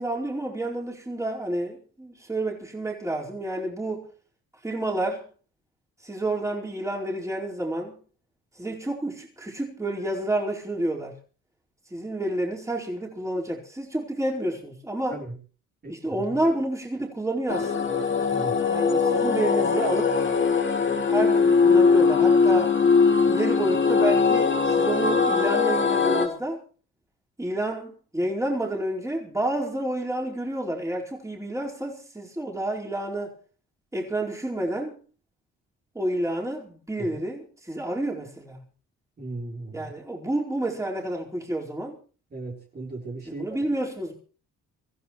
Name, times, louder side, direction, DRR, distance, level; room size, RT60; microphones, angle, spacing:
voice 1, 0.0-4.1 4.6-5.3 6.0-8.0 8.6-11.1 11.9-15.2 15.9-18.0 18.7-20.2 21.1-22.8 23.3-26.6 27.4-33.4 33.9-35.0 35.9-38.6 39.7-42.0 43.2-44.1, right 1 dB, 10° right, 4.7 m, -29 dB
voice 2, 15.8-16.5 18.3-18.6 37.0-37.2 39.2-39.9 42.3-43.6, right 2 dB, 35° right, 4.0 m, -37 dB
sound 1, 17.5-26.3, left 5 dB, 40° left, 2.9 m, -21 dB
25.5 x 15.0 x 3.2 m
cardioid pair, 90°, 30 cm